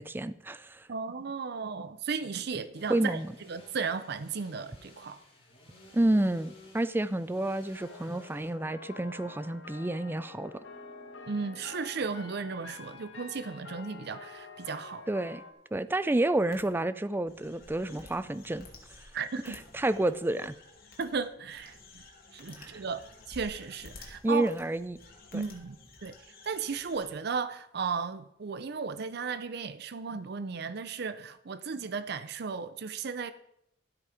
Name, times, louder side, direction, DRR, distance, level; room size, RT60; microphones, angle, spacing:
voice 1, 0.0-0.9 2.9-3.3 5.9-10.5 15.1-15.4 15.7-18.7 19.5-20.6 22.6-22.8 24.2-25.0 25.3-25.4, right 1 dB, 10° right, 0.4 m, -29 dB
voice 2, 0.9-3.2 3.5-5.2 11.3-15.1 19.1-19.6 21.0-21.8 22.3-23.0 23.3-24.5 25.3-25.8 26.0-33.3, right 5 dB, 60° right, 0.6 m, -35 dB
sound 1, 2.7-8.5, left 1 dB, 30° left, 3.8 m, -55 dB
sound 2, 7.7-15.5, left 4 dB, 90° left, 1.8 m, -48 dB
sound 3, 16.5-16.6 17.1-27.1, left 3 dB, 55° left, 2.4 m, -52 dB
13.0 x 8.3 x 5.0 m
head